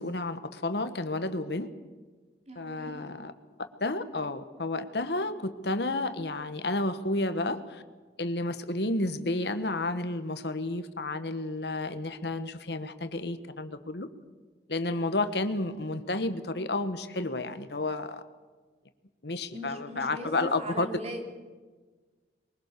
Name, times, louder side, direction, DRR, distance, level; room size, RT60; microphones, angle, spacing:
voice 1, 0.0-1.7 2.5-3.3 3.8-7.8 8.2-14.1 14.7-18.2 19.2-20.9, left 2 dB, 65° left, 10 dB, 1.5 m, -31 dB
voice 2, 2.5-3.0 19.5-21.3, equal, 40° right, 2 dB, 3.6 m, -39 dB
23.0 x 22.0 x 6.9 m, 1.4 s
head